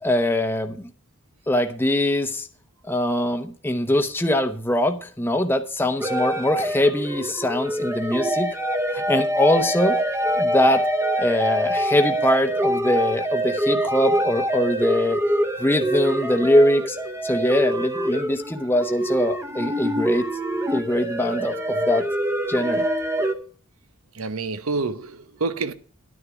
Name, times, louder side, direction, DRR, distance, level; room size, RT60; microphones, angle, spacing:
voice 1, 0.0-0.9 1.5-2.5 2.9-8.5 8.9-10.0 10.4-10.8 11.2-15.2 15.6-17.0 17.2-20.3 20.7-22.0 22.5-22.8, left 1 dB, 10° left, 0.8 m, -22 dB
sound 1, 6.0-23.3, right 1 dB, 15° right, 0.9 m, -25 dB
voice 2, 24.2-25.7, right 3 dB, 85° right, 0.9 m, -27 dB
11.5 x 9.9 x 4.8 m
head